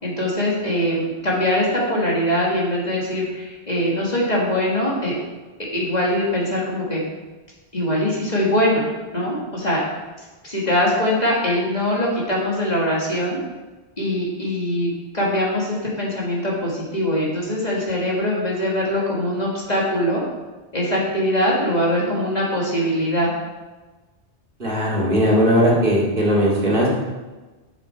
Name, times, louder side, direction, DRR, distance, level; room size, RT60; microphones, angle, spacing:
voice 1, 0.0-5.2 5.7-7.0 7.7-8.8 9.1-9.8 10.2-13.4 14.0-20.2 20.7-23.3, left 1 dB, 40° left, -4 dB, 2.0 m, -22 dB
voice 2, 24.6-27.0, equal, 50° right, -5 dB, 2.3 m, -18 dB
7.7 x 7.1 x 4.4 m, 1.2 s
omnidirectional pair, 1.2 m